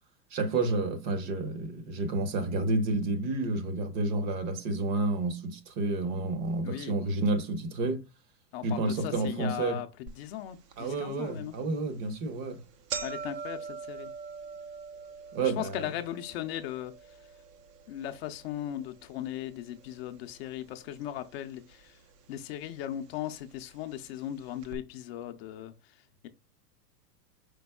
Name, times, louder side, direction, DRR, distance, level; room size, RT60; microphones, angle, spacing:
voice 1, 0.3-8.0 8.6-9.8 10.8-12.6 15.3-15.8, right 2 dB, 45° right, 1.0 m, -30 dB
voice 2, 6.6-7.0 8.5-11.6 13.0-14.1 15.4-17.2 17.9-22.0 22.3-26.3, left 12 dB, 40° left, 0.5 m, -38 dB
sound 1, 10.1-10.2 10.7-10.8 11.6-11.8 12.2-12.3 12.5-20.7 21.0-21.7 22.5-22.6 23.6-23.7 24.0-24.1 24.6-24.8, right 5 dB, 75° right, 1.0 m, -43 dB
5.2 x 3.9 x 2.2 m
hypercardioid pair, 125°, 48 cm